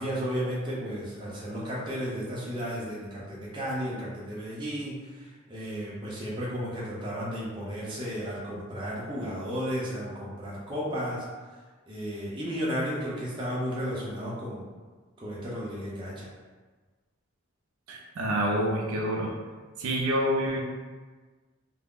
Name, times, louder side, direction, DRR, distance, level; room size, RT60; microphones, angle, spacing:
voice 1, 0.0-11.2 11.9-14.7 15.2-16.3, equal, 20° right, -6 dB, 0.5 m, -33 dB
voice 2, 17.9-19.3 19.8-20.6, equal, 80° right, 0 dB, 0.4 m, -27 dB
2.4 x 2.0 x 3.5 m, 1.4 s
head